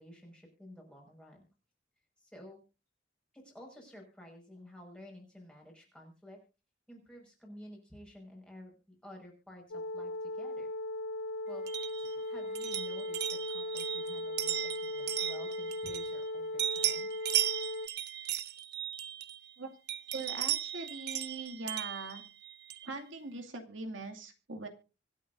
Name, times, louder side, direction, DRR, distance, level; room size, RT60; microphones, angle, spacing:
voice 1, 0.0-1.4 2.2-2.6 3.3-6.4 6.9-8.7 9.0-10.7 11.5-11.6 12.0-17.1, equal, 5° left, 0 dB, 5.6 m, -52 dB
sound 1, 9.7-17.9, left 1 dB, 75° left, 0.5 m, -38 dB
sound 2, 11.7-16.3 16.6-19.5 19.9-22.9, right 12 dB, 55° right, 0.9 m, -36 dB
voice 2, 20.1-22.2 22.8-24.7, right 3 dB, 80° right, 4 dB, 2.4 m, -41 dB
25.0 x 8.7 x 2.6 m, 0.31 s
head